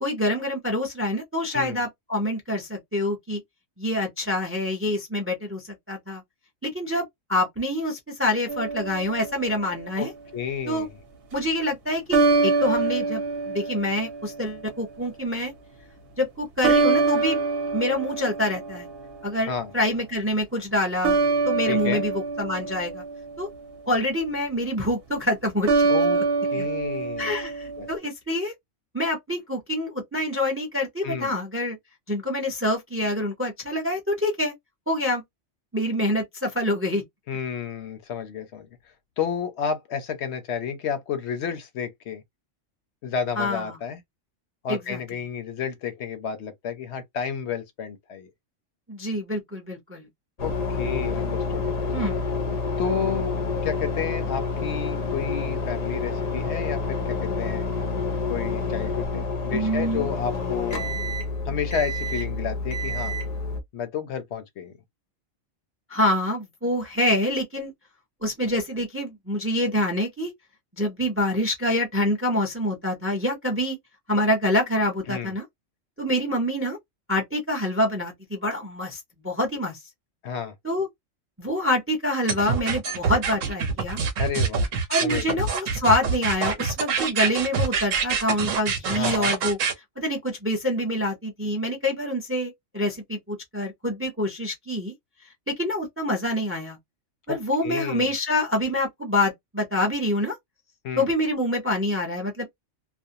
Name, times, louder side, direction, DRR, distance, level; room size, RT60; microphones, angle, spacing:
voice 1, 0.0-3.4 3.8-6.2 6.6-10.1 10.7-10.9 11.3-15.5 16.2-17.4 17.7-18.9 19.2-21.2 21.4-23.0 23.4-23.5 23.9-25.9 26.1-26.2 26.5-26.7 27.2-28.5 28.9-31.8 32.1-34.5 34.9-35.2 35.7-37.0 43.4-43.8 44.7-45.0 48.9-50.1 51.9-52.4 59.5-60.1 65.9-67.7 68.2-70.3 70.7-73.8 74.1-75.4 76.0-76.8 77.1-79.8 80.6-80.9 81.4-84.0 84.9-89.6 90.0-94.9 95.5-96.8 97.3-100.3 101.0-102.4, left 1 dB, 15° right, 0.4 m, -26 dB
sound 1, 8.5-9.8 12.1-14.6 16.6-19.2 21.0-23.5 25.7-28.0, right 3 dB, 55° right, 0.9 m, -25 dB
voice 2, 10.0-10.9 19.5-19.7 21.7-22.0 25.9-26.2 26.5-27.3 27.8-27.9 31.0-31.3 37.3-38.7 39.2-42.2 43.0-44.0 44.6-48.3 50.4-51.9 52.7-53.4 53.6-57.7 58.3-60.8 61.5-63.2 63.7-64.7 75.1-75.3 80.2-80.5 84.2-84.7 85.0-85.4 88.9-89.4 97.3-98.1 100.8-101.1, left 7 dB, 70° left, 0.8 m, -31 dB
sound 2, 50.4-63.6, left 3 dB, 50° left, 0.5 m, -28 dB
sound 3, 82.3-89.7, right 5 dB, 90° right, 1.1 m, -25 dB
2.5 x 2.1 x 2.7 m
omnidirectional pair, 1.3 m